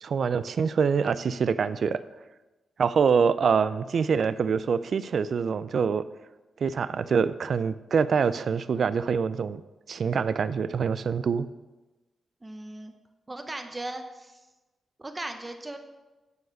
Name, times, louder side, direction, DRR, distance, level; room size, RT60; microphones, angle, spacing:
voice 1, 0.0-2.0 2.8-6.0 6.6-9.6 9.9-11.5, right 6 dB, 65° right, 14 dB, 0.3 m, -25 dB
voice 2, 12.4-12.9 13.3-14.4 15.0-15.8, right 2 dB, 20° right, 6 dB, 0.8 m, -37 dB
9.5 x 4.7 x 6.3 m, 1.1 s
cardioid pair, 85°, 0 cm